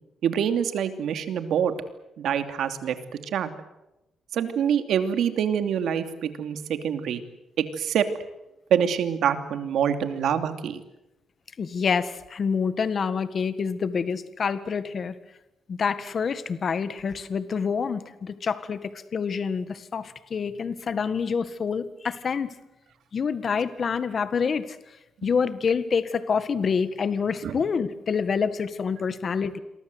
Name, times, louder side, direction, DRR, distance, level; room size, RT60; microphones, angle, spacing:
voice 1, 0.2-1.7 2.2-3.0 3.3-3.5 4.3-7.2 7.6-8.1 8.7-10.8 27.4-27.6, right 8 dB, 70° right, 9 dB, 2.8 m, -25 dB
voice 2, 11.6-15.1 15.7-22.5 23.1-24.7 25.2-29.6, left 6 dB, 40° left, 13 dB, 1.7 m, -27 dB
28.0 x 23.5 x 8.0 m, 0.92 s
cardioid pair, 145°, 0 cm